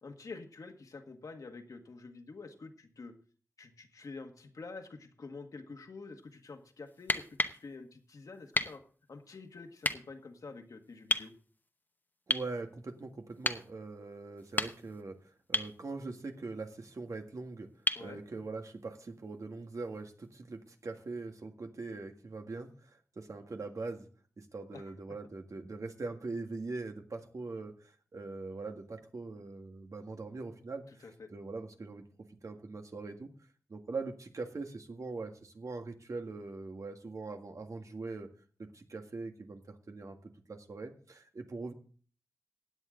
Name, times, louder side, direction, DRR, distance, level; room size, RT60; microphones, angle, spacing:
voice 1, 0.0-3.1 3.6-8.8 9.1-11.3 18.0-18.2 24.7-24.8 30.9-31.3, left 4 dB, 85° left, 4 dB, 1.7 m, -48 dB
sound 1, 7.0-7.6 8.5-8.8 9.8-10.0 11.1-11.3 12.3-12.5 13.4-13.7 14.4-15.0 15.5-15.8 17.9-18.1 19.9-20.0, left 2 dB, 30° left, 0.8 m, -31 dB
voice 2, 12.3-15.2 15.5-17.7 18.0-24.1 24.4-33.3 33.7-38.3 38.6-41.7, right 3 dB, 70° right, 4 dB, 1.7 m, -42 dB
16.0 x 9.2 x 3.8 m, 0.42 s
wide cardioid pair, 90°, 6 cm